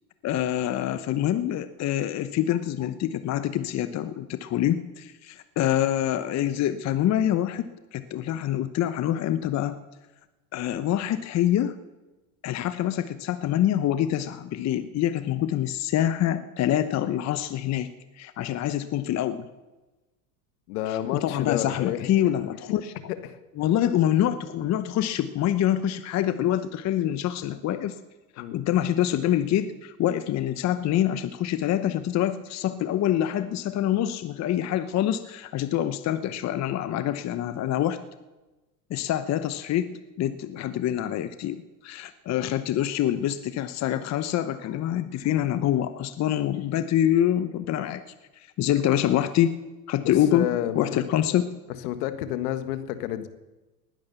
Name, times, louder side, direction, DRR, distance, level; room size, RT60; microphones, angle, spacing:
voice 1, 0.2-9.8 10.5-11.8 12.4-17.9 18.2-19.5 20.9-22.9 23.6-28.0 28.4-38.0 38.9-48.0 48.4-49.5 49.9-50.5 50.7-51.5, left 11 dB, 35° left, 12 dB, 0.9 m, -26 dB
voice 2, 20.7-22.1 23.1-23.4 28.4-28.6 50.0-51.0 51.8-53.3, left 12 dB, 70° left, 10 dB, 1.6 m, -30 dB
19.5 x 10.5 x 6.9 m, 1.1 s
hypercardioid pair, 95°, 47 cm